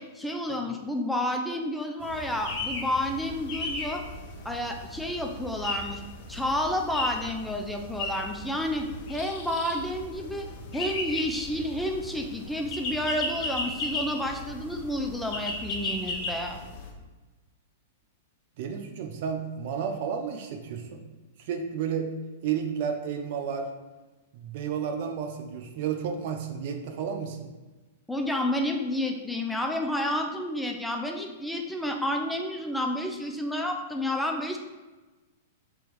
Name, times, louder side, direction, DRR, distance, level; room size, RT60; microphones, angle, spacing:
voice 1, 0.0-4.0 4.4-6.0 6.3-16.6 28.1-34.6, left 1 dB, 5° left, 2 dB, 0.4 m, -30 dB
sound 1, 2.0-16.9, left 2 dB, 50° left, 0.8 m, -36 dB
voice 2, 18.6-21.0 21.5-22.1 22.4-23.7 24.3-27.5, right 7 dB, 55° right, 4 dB, 0.6 m, -32 dB
3.5 x 3.0 x 4.5 m, 1.2 s
hypercardioid pair, 120°, 0 cm